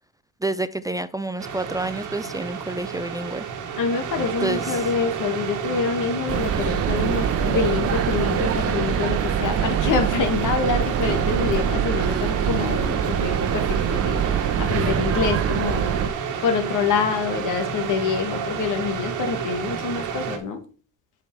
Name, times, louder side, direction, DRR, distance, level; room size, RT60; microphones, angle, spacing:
voice 1, 0.4-3.4 4.4-4.9, right 2 dB, 10° right, 0.4 m, -29 dB
sound 1, 1.4-20.4, right 7 dB, 85° right, 1.4 m, -30 dB
voice 2, 3.8-15.9 16.4-20.6, left 5 dB, 85° left, 1.5 m, -26 dB
sound 2, 6.3-16.1, right 8 dB, 50° right, 0.8 m, -24 dB
7.7 x 5.8 x 4.5 m
cardioid pair, 90°, 30 cm